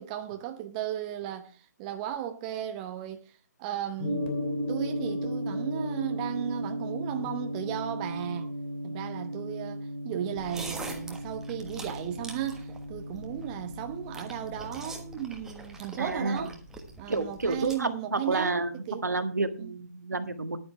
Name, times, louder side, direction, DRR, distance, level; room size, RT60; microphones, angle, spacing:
voice 1, 0.0-4.3 4.7-8.5 8.8-16.5 17.0-19.1 19.6-19.7, right 11 dB, 25° right, 0.9 m, -35 dB
Gong, 4.0-18.2, equal, 35° left, 2.9 m, -36 dB
sound 1, 10.4-17.8, right 3 dB, 5° right, 1.4 m, -44 dB
voice 2, 16.0-16.5 17.1-20.6, right 3 dB, 75° right, 1.6 m, -30 dB
11.0 x 9.2 x 4.7 m
figure-of-eight pair, 140°, 9 cm